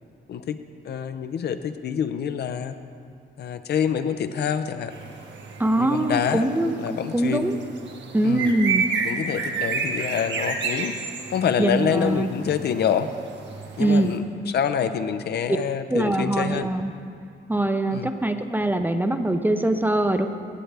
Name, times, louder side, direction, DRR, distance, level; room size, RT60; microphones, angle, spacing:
voice 1, 0.8-2.7 3.4-4.9 5.8-7.5 8.2-8.5 9.0-10.9 11.3-13.1 13.8-16.7 17.9-18.1, left 8 dB, 55° left, 10 dB, 0.5 m, -26 dB
sound 1, 4.9-14.2, right 5 dB, 65° right, 1.2 m, -31 dB
voice 2, 5.6-7.6 8.1-8.8 11.6-12.3 13.8-14.1 15.9-16.9 17.5-20.3, right 1 dB, 10° right, 8 dB, 0.5 m, -23 dB
16.0 x 7.7 x 3.4 m, 2.4 s
cardioid pair, 90°, 20 cm